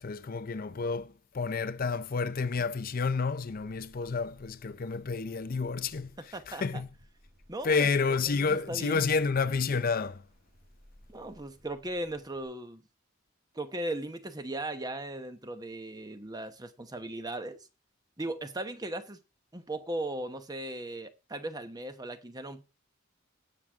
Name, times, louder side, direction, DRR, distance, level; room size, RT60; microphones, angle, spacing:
voice 1, 0.0-6.1 6.5-6.9 7.6-10.2, left 4 dB, 45° left, 0.5 m, -30 dB
sound 1, 3.3-12.5, equal, 50° right, 6.4 m, -61 dB
voice 2, 6.2-6.8 7.5-7.9 8.2-9.0 11.1-12.8 13.5-17.7 18.2-19.2 19.5-22.6, right 1 dB, 20° right, 1.0 m, -37 dB
17.5 x 6.4 x 3.6 m
head